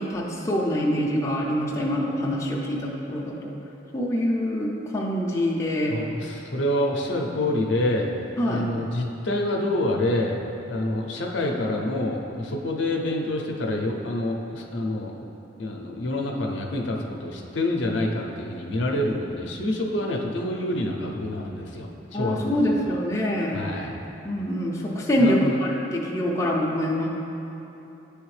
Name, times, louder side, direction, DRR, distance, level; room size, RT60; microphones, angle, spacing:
voice 1, 0.0-3.5 3.9-6.0 8.4-8.7 22.1-23.7 24.2-27.1, equal, 15° left, -3 dB, 0.5 m, -25 dB
voice 2, 5.9-8.1 8.4-10.4 10.7-15.2 15.6-23.0 23.5-23.9 25.2-25.6, left 1 dB, 65° left, 0 dB, 0.6 m, -27 dB
9.5 x 3.4 x 3.2 m, 3.0 s
head